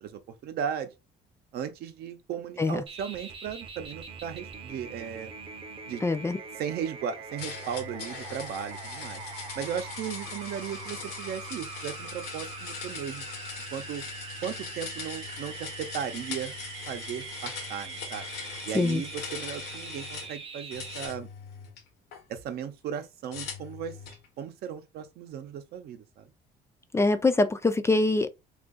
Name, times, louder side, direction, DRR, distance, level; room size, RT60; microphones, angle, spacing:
voice 1, 0.0-0.9 1.5-5.3 5.9-6.0 6.6-9.2 9.6-13.2 13.7-14.0 14.4-16.5 16.9-18.3 18.7-21.3 22.3-24.0 24.4-26.3, right 8 dB, 70° right, 0.7 m, -36 dB
sound 1, 2.9-21.1, right 5 dB, 30° right, 0.7 m, -42 dB
voice 2, 6.0-6.4 18.7-19.0 26.9-28.3, left 2 dB, 15° left, 0.3 m, -24 dB
sound 2, 7.4-20.3 20.7-22.2 23.3-24.3, left 6 dB, 85° left, 1.0 m, -41 dB
2.6 x 2.4 x 3.7 m
cardioid pair, 110°, 17 cm